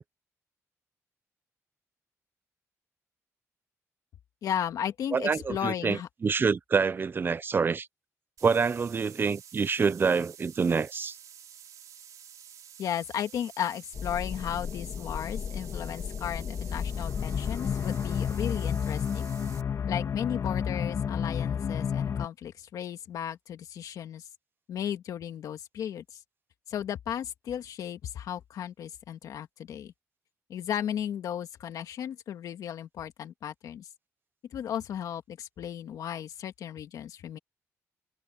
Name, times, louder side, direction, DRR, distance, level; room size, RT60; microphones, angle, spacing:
voice 1, 4.4-6.1 12.8-19.3 19.9-24.3 24.7-26.2 26.7-29.9 30.5-33.9 34.5-37.4, left 9 dB, 80° left, 2.2 m, -35 dB
voice 2, 5.1-7.9 8.4-11.2, right 5 dB, 35° right, 0.7 m, -26 dB
sound 1, 8.4-19.6, right 9 dB, 75° right, 3.0 m, -50 dB
sound 2, 13.9-22.3, left 7 dB, 55° left, 2.3 m, -31 dB
cardioid pair, 100°, 6 cm